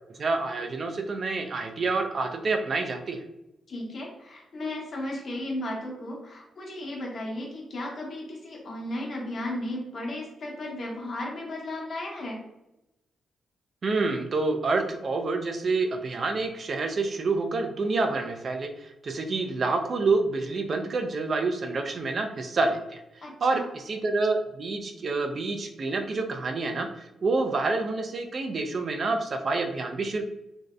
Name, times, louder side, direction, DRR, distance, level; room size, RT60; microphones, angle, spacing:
voice 1, 0.2-3.2 13.8-23.0 23.4-30.2, right 3 dB, 50° right, 5 dB, 0.3 m, -28 dB
voice 2, 3.7-12.4 23.2-23.7, left 1 dB, 55° left, -2 dB, 0.9 m, -35 dB
2.5 x 2.0 x 2.4 m, 0.92 s
cardioid pair, 85°, 0 cm